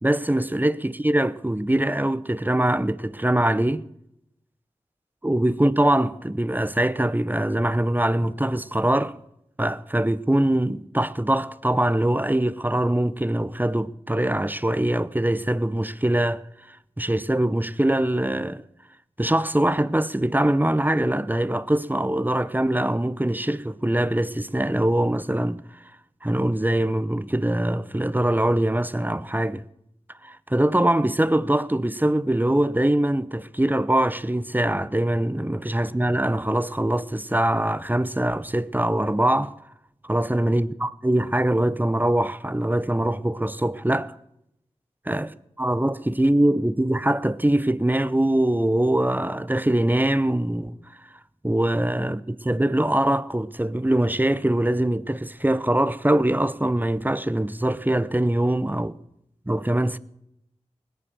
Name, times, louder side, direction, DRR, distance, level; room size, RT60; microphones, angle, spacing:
voice 1, 0.0-3.8 5.2-9.2 9.6-18.6 19.2-25.8 26.2-29.6 30.2-39.5 40.0-44.1 45.1-51.1 51.4-59.0 59.5-60.0, right 1 dB, 15° right, 0.7 m, -23 dB
20.5 x 10.5 x 6.9 m
wide cardioid pair, 55°, 12 cm